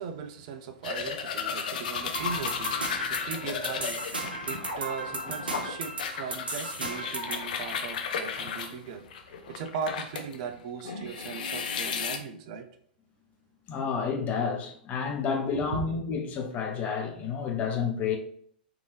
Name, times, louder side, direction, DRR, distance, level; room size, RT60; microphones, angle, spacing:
voice 1, 0.0-9.1 9.5-12.7 15.5-15.8, right 6 dB, 50° right, 0.4 m, -38 dB
Tooth brushing, 0.8-10.4 10.8-12.2, left 6 dB, 60° left, 0.5 m, -34 dB
sound 1, 2.1-7.5, right 1 dB, 85° right, 0.7 m, -35 dB
voice 2, 13.7-18.2, left 6 dB, 30° left, 0.8 m, -30 dB
4.6 x 2.7 x 3.2 m
figure-of-eight pair, 100°, 5 cm